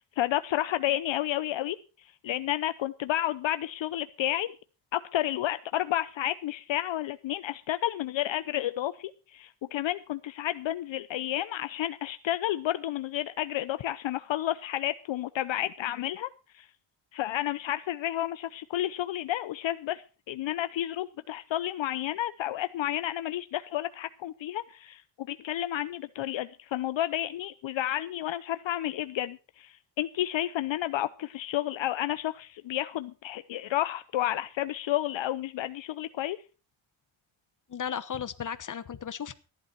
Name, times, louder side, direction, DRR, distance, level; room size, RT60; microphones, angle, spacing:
voice 1, 0.2-4.5 4.9-16.3 16.5-16.7 17.1-36.4, left 13 dB, 65° left, 12 dB, 0.7 m, -31 dB
voice 2, 37.7-39.4, left 8 dB, 40° left, 12 dB, 1.1 m, -35 dB
14.5 x 11.0 x 4.6 m, 0.34 s
cardioid pair, 115°, 49 cm